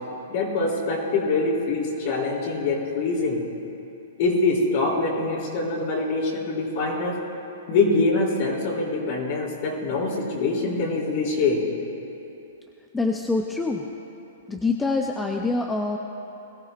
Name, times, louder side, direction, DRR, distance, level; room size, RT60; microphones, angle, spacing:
voice 1, 0.3-3.5 4.2-7.2 7.7-11.6, left 3 dB, 45° left, -2 dB, 3.2 m, -24 dB
voice 2, 12.9-13.8 14.5-16.0, left 3 dB, 5° left, 2 dB, 0.5 m, -25 dB
21.5 x 14.5 x 2.5 m, 2.9 s
hypercardioid pair, 160°, 0 cm